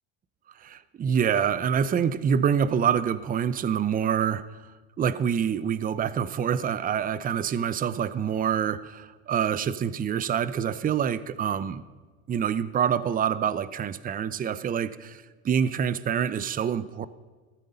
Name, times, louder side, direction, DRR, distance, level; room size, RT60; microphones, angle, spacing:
voice 1, 0.6-4.4 5.0-11.8 12.3-17.1, right 8 dB, 25° right, 16 dB, 0.6 m, -26 dB
14.0 x 12.5 x 5.4 m, 1.4 s
supercardioid pair, 100°, 34 cm